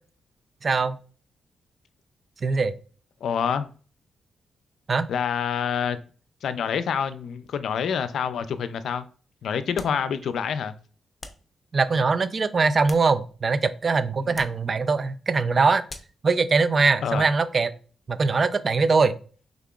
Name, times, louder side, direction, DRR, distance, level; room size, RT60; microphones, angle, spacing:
voice 1, 0.6-1.0 2.4-2.8 4.9-5.1 11.7-15.8 16.2-17.7 18.1-19.2, right 4 dB, 45° right, 0.5 m, -22 dB
voice 2, 3.2-3.7 5.1-6.0 6.4-9.1 9.4-10.7 14.2-14.4 17.0-17.3, left 7 dB, 75° left, 0.4 m, -27 dB
sound 1, 9.7-10.1 11.2-11.5 12.6-13.5 14.3-14.7 15.9-16.2, left 3 dB, 35° left, 0.7 m, -43 dB
5.7 x 3.5 x 2.4 m
cardioid pair, 85°, 0 cm